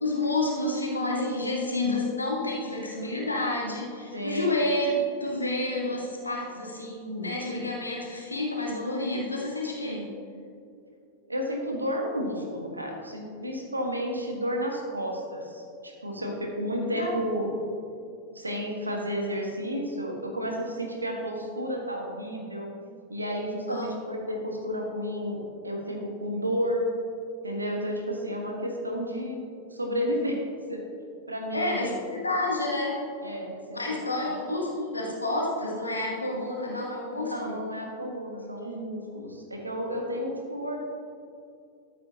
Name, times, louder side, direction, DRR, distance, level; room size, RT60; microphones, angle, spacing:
voice 1, 0.0-10.1 16.1-16.2 16.9-17.1 23.7-23.9 31.5-33.0 33.7-37.6, left 2 dB, 80° left, -2 dB, 1.7 m, -29 dB
voice 2, 4.1-4.5 11.3-17.5 18.3-22.7 23.1-26.8 27.4-29.4 29.7-30.4 30.7-30.8 31.3-32.0 33.2-34.3 37.2-40.8, equal, 80° right, 1 dB, 1.4 m, -32 dB
13.0 x 8.3 x 2.9 m, 2.5 s
figure-of-eight pair, 90°, 0 cm